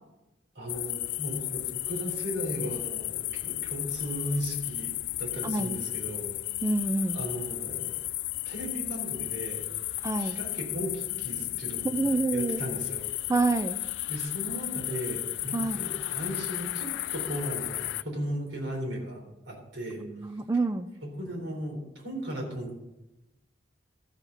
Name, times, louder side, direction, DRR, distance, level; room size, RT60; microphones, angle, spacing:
voice 1, 0.6-4.9 5.2-6.3 7.1-7.9 8.5-9.6 10.1-13.1 14.1-20.0 21.0-22.8, right 1 dB, 85° right, 0 dB, 4.0 m, -36 dB
sound 1, 0.7-18.0, left 17 dB, 75° left, 0.4 m, -34 dB
voice 2, 5.4-5.8 6.6-7.2 10.0-10.4 11.8-12.6 13.3-13.8 15.5-15.8 20.0-20.9, right 3 dB, 15° right, 11 dB, 0.4 m, -27 dB
13.5 x 6.9 x 5.6 m, 0.96 s
head